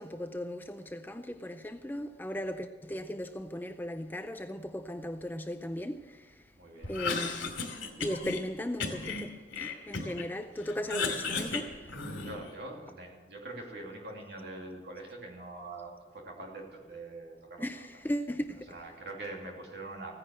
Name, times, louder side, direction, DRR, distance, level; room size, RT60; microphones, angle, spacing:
voice 1, 0.0-6.4 6.9-7.5 8.0-12.0 17.6-18.7, equal, 10° left, 0.4 m, -37 dB
voice 2, 6.5-7.0 12.2-17.9 18.7-20.1, right 2 dB, 55° right, 2.8 m, -44 dB
Cough, 6.8-8.4 8.8-10.3 10.6-12.5, left 4 dB, 85° left, 2.7 m, -35 dB
15.5 x 9.8 x 7.7 m
head